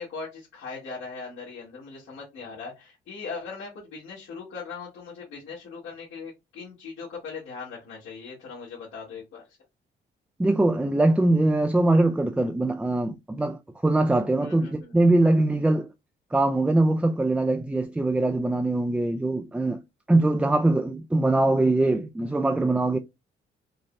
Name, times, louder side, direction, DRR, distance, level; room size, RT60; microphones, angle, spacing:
voice 1, 0.0-9.5 14.4-14.9, left 5 dB, 80° left, 1.9 m, -39 dB
voice 2, 10.4-15.9 16.3-19.8 20.1-23.0, right 2 dB, 5° right, 0.3 m, -22 dB
5.2 x 2.6 x 2.3 m
cardioid pair, 90°, 20 cm